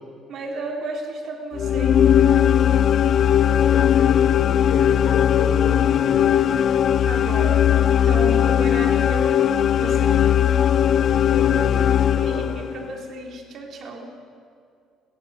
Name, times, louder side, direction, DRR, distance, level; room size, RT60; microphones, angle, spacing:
voice 1, 0.3-2.1 7.0-10.3 12.2-14.1, right 2 dB, 45° right, 1 dB, 3.5 m, -33 dB
sound 1, 1.5-12.9, left 9 dB, 40° left, 0.5 m, -18 dB
voice 2, 3.7-6.4 11.2-11.9 12.2-12.6, left 4 dB, 55° left, 2 dB, 5.4 m, -32 dB
30.0 x 18.5 x 7.0 m, 2.2 s
cardioid pair, 160°, 0 cm